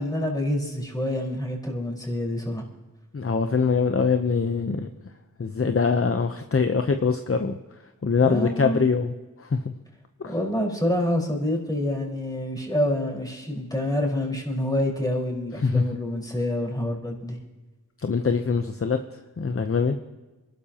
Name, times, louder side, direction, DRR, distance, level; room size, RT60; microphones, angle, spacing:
voice 1, 0.0-2.6 8.2-8.8 10.2-17.4, left 1 dB, 10° left, -1 dB, 4.6 m, -27 dB
voice 2, 3.1-4.9 5.4-7.5 8.0-9.1 9.4-9.7 10.2-10.3 15.6-15.8 18.0-19.0 19.4-20.0, left 5 dB, 40° left, 7 dB, 0.8 m, -23 dB
27.5 x 12.0 x 2.9 m, 1.1 s
wide cardioid pair, 50°, 34 cm